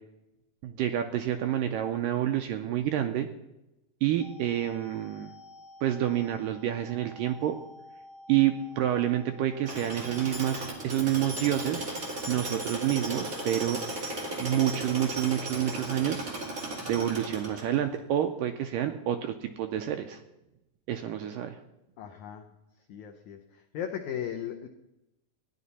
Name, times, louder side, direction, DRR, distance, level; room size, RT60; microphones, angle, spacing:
voice 1, 0.6-3.3 4.0-5.3 5.8-7.6 8.3-11.8 12.3-13.8 14.4-16.2 16.9-20.2 20.9-21.6, right 11 dB, 85° right, 7 dB, 2.0 m, -28 dB
sound 1, 4.2-10.7, left 1 dB, 35° left, 1.5 m, -51 dB
Tools, 9.7-18.0, right 1 dB, 30° right, 1.9 m, -36 dB
voice 2, 22.0-22.5 22.9-23.4 23.7-24.7, left 9 dB, 85° left, 4 dB, 1.7 m, -36 dB
14.5 x 10.5 x 4.2 m, 0.93 s
omnidirectional pair, 4.4 m